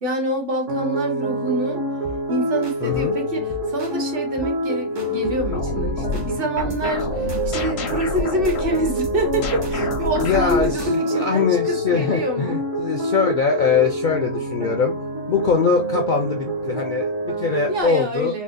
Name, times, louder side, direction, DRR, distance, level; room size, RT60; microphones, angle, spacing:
voice 1, 0.0-1.8 2.3-12.6 17.7-18.4, right 1 dB, 50° right, 0.9 m, -26 dB
sound 1, 0.7-17.8, equal, 75° right, 1.5 m, -26 dB
sound 2, 2.0-2.3 2.6-3.1 3.5-4.0 4.4-4.6 5.0-5.5 5.8-6.4 6.7-7.0 7.3-11.2, right 1 dB, 30° right, 0.5 m, -39 dB
voice 2, 2.8-3.1 10.2-14.9 15.3-18.3, left 5 dB, 60° left, 0.5 m, -22 dB
sound 3, 5.4-11.6, left 4 dB, 80° left, 1.1 m, -29 dB
4.2 x 2.1 x 2.5 m
omnidirectional pair, 1.3 m